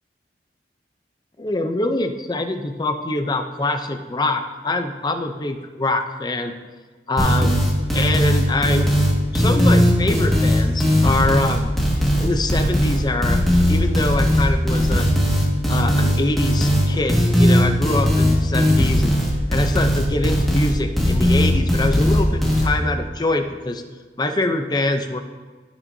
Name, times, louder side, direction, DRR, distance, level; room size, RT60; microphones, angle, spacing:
voice 1, 1.4-6.6 7.1-8.9 9.3-11.7 12.2-13.4 13.7-15.1 15.7-23.8 24.2-25.2, left 2 dB, 25° left, 7 dB, 0.5 m, -24 dB
sound 1, 7.2-22.7, equal, ahead, 1.7 m, -18 dB
17.0 x 5.8 x 2.7 m, 1.4 s
head